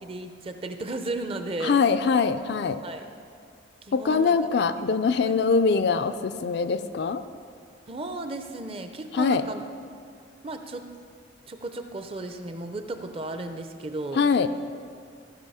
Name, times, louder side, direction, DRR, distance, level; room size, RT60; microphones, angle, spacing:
voice 1, 0.0-1.8 2.8-3.1 3.8-4.4 4.6-5.3 7.9-9.6 10.4-10.9 11.5-14.3, right 2 dB, 30° right, 7 dB, 0.5 m, -35 dB
voice 2, 1.6-2.8 3.9-7.2 9.1-9.4 14.2-14.5, left 5 dB, 55° left, 10 dB, 0.4 m, -23 dB
15.0 x 5.4 x 5.6 m, 2.3 s
head